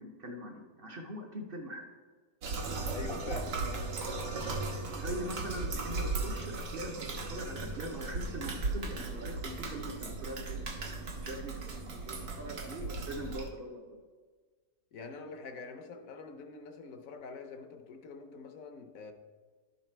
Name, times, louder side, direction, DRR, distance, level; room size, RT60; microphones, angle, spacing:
voice 1, 0.0-1.9 4.3-4.5 4.9-14.0, right 1 dB, 50° right, 2 dB, 0.7 m, -42 dB
sound 1, 2.4-13.5, right 3 dB, 90° right, 1.7 m, -37 dB
voice 2, 2.9-3.9 14.9-19.1, left 4 dB, 65° left, 6 dB, 1.0 m, -45 dB
11.0 x 4.1 x 4.4 m, 1.4 s
omnidirectional pair, 1.8 m